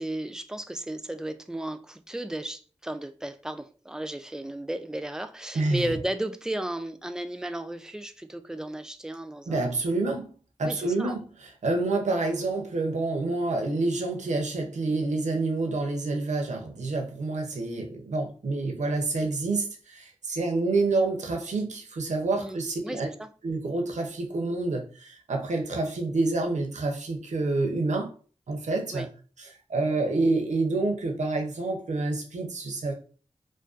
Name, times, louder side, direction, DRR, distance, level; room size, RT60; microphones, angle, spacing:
voice 1, 0.0-9.7 10.6-11.2 22.4-23.3 28.9-29.1, right 1 dB, 5° right, 0.3 m, -34 dB
voice 2, 9.5-10.3 10.6-23.1 23.4-28.1 28.5-29.1 29.4-32.9, right 3 dB, 75° right, 0.6 m, -28 dB
2.5 x 2.2 x 2.3 m
cardioid pair, 40°, 12 cm